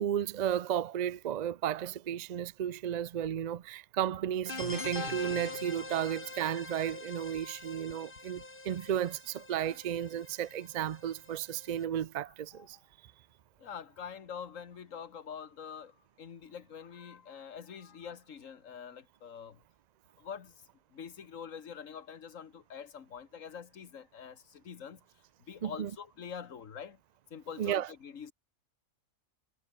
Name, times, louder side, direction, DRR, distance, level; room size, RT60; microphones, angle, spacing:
voice 1, 0.0-12.8 25.6-25.9 27.6-27.9, right 10 dB, 65° right, 0.4 m, -33 dB
sound 1, 4.4-11.8, left 2 dB, 40° left, 3.1 m, -43 dB
voice 2, 12.3-12.7 13.6-19.6 20.2-20.6 20.9-25.0 25.5-27.0 27.3-28.3, left 7 dB, 70° left, 1.8 m, -45 dB
omnidirectional pair, 1.4 m